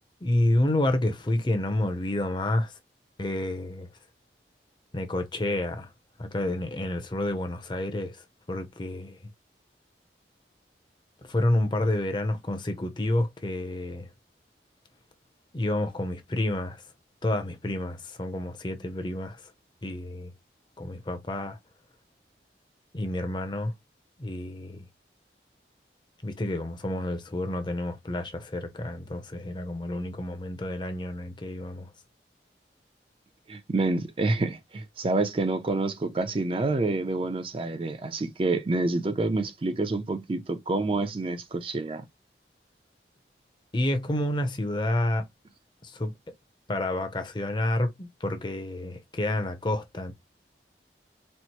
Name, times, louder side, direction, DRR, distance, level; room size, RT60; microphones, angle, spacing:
voice 1, 0.2-2.8 3.2-3.9 4.9-5.9 6.2-9.2 11.2-14.1 15.5-16.8 17.2-19.5 19.8-20.3 20.8-21.6 22.9-23.7 24.2-24.9 26.2-31.9 43.7-45.3 45.8-46.1 46.7-50.1, left 1 dB, 25° left, 0.6 m, -29 dB
voice 2, 33.5-42.0, right 2 dB, 30° right, 0.4 m, -28 dB
4.3 x 2.0 x 2.9 m
head